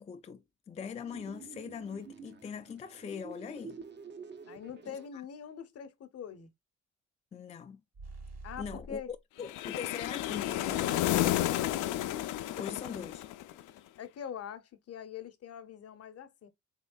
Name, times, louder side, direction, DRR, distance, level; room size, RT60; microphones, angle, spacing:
voice 1, 0.0-3.8 5.1-5.2 7.3-7.8 8.6-9.0 9.4-12.0 12.6-13.3, left 7 dB, 25° left, 0.3 m, -42 dB
sound 1, 1.1-5.1, right 5 dB, 35° right, 0.7 m, -49 dB
voice 2, 4.4-6.5 8.4-9.1 14.0-16.5, left 8 dB, 55° left, 0.7 m, -43 dB
sound 2, 7.9-9.2, right 2 dB, 55° right, 2.4 m, -46 dB
sound 3, 9.5-13.7, left 13 dB, 85° left, 0.5 m, -31 dB
3.6 x 3.1 x 2.2 m
cardioid pair, 90°, 30 cm